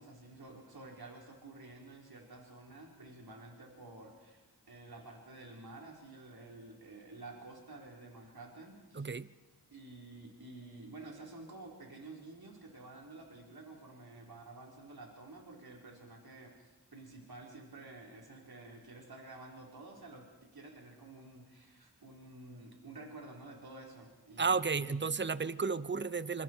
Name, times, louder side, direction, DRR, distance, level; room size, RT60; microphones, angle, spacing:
voice 1, 0.0-9.1 9.7-25.1, right 2 dB, 65° right, 0 dB, 4.4 m, -51 dB
voice 2, 8.9-9.3 24.4-26.4, right 5 dB, 30° right, 17 dB, 0.8 m, -33 dB
27.0 x 24.0 x 4.6 m, 1.2 s
cardioid pair, 40°, 40 cm